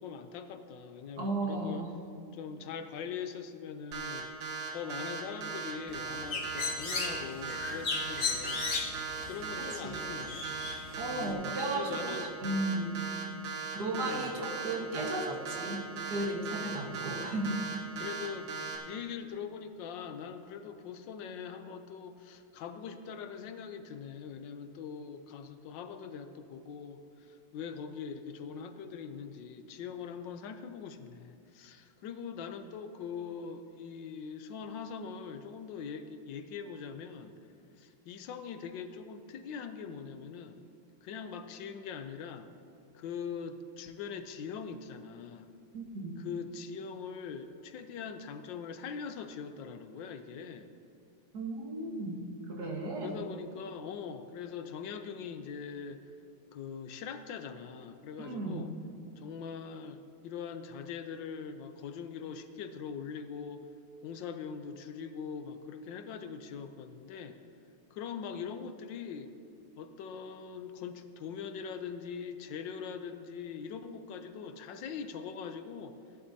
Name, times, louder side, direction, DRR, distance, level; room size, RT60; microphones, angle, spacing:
voice 1, 0.0-1.9 2.3-4.3 4.7-10.5 11.1-12.3 13.9-14.5 16.7-17.3 18.0-37.3 37.8-40.6 41.0-42.5 42.9-45.5 46.2-50.7 53.0-56.0 56.5-58.7 59.2-63.6 64.0-67.4 67.9-69.3 69.8-76.0, left 6 dB, 75° left, 8 dB, 1.3 m, -42 dB
voice 2, 1.2-1.9 9.6-10.0 11.0-13.0 13.4-15.8 16.1-17.6 45.7-46.2 51.3-52.2 52.5-53.2 58.2-58.7, right 2 dB, 55° right, -1 dB, 1.9 m, -35 dB
sound 1, 3.9-18.8, right 6 dB, 80° right, 1.9 m, -38 dB
Bird, 5.9-11.3, left 4 dB, 50° left, 1.4 m, -37 dB
17.0 x 11.0 x 2.7 m, 2.5 s
omnidirectional pair, 2.1 m